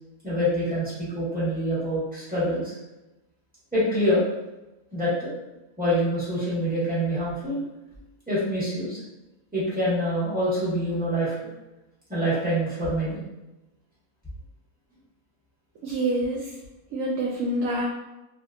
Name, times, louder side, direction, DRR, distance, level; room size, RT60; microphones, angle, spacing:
voice 1, 0.2-2.7 3.7-4.2 4.9-5.3 5.8-7.6 8.3-9.0 9.5-11.4 12.1-13.2, equal, 5° right, -10 dB, 1.2 m, -25 dB
voice 2, 15.8-16.5 16.9-17.8, right 1 dB, 70° right, -3 dB, 0.9 m, -26 dB
3.0 x 2.9 x 2.4 m, 1.0 s
omnidirectional pair, 1.6 m